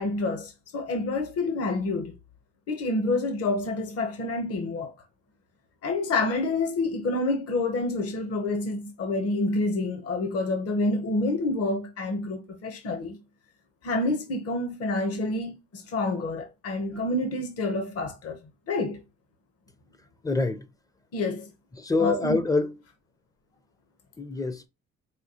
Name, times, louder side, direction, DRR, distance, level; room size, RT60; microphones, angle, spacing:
voice 1, 0.0-2.1 2.7-4.9 5.8-13.2 13.8-18.4 18.7-19.0 21.1-21.5 22.0-22.4, left 2 dB, 50° left, 0.8 m, -28 dB
voice 2, 20.2-20.7 21.8-22.7 24.2-24.7, left 3 dB, 10° left, 0.4 m, -25 dB
5.0 x 2.3 x 2.8 m
cardioid pair, 90°, 30 cm